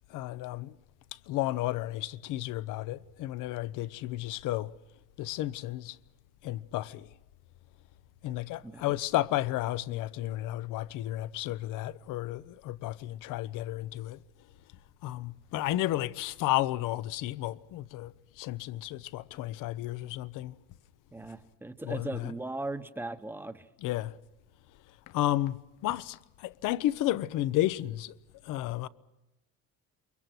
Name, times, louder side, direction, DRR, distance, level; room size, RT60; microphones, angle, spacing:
voice 1, 0.1-0.7 1.3-4.7 5.2-6.0 6.4-7.1 8.2-14.2 15.0-20.5 21.8-22.3 23.8-24.1 25.1-25.6 25.8-28.1 28.4-28.9, left 15 dB, 65° left, 0.9 m, -32 dB
voice 2, 8.6-9.0 21.1-23.7, right 2 dB, 5° right, 1.0 m, -38 dB
28.5 x 24.0 x 6.1 m
cardioid pair, 150°, 34 cm